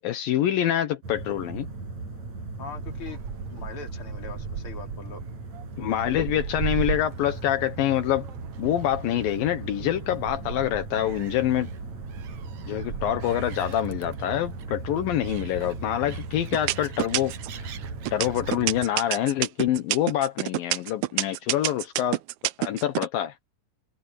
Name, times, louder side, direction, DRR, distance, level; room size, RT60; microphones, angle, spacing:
voice 1, 0.0-1.7 5.8-8.3 8.6-11.7 12.7-17.7 18.1-22.2 22.6-23.3, left 12 dB, 75° left, 2.8 m, -26 dB
sound 1, 1.0-18.9, right 3 dB, 50° right, 8.4 m, -38 dB
voice 2, 2.6-3.2 3.5-5.2, left 5 dB, 40° left, 3.5 m, -41 dB
Gull seagull, 2.8-18.5, right 8 dB, 65° right, 1.5 m, -39 dB
sound 2, 15.6-16.1 16.5-17.6 18.1-23.1, right 16 dB, 90° right, 1.6 m, -27 dB
omnidirectional pair, 4.2 m